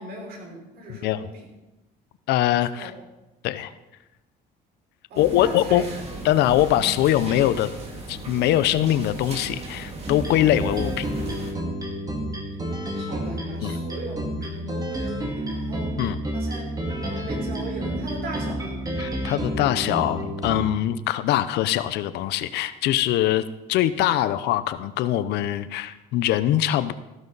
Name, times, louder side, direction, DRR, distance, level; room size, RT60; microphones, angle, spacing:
voice 1, 0.0-1.5 2.8-2.9 5.1-6.2 12.9-16.0 16.3-18.8, right 1 dB, 70° right, 0 dB, 4.6 m, -38 dB
voice 2, 0.9-1.3 2.3-2.9 3.4-3.7 5.2-5.8 6.2-7.7 8.1-11.1 13.6-13.8 16.0-16.2 19.0-26.9, left 12 dB, 80° left, 13 dB, 0.7 m, -22 dB
sound 1, 5.1-11.5, right 2 dB, 40° right, 3.0 m, -37 dB
sound 2, 10.0-20.6, right 1 dB, 20° right, 2.2 m, -30 dB
14.5 x 12.5 x 4.0 m, 1.0 s
cardioid pair, 110°, 17 cm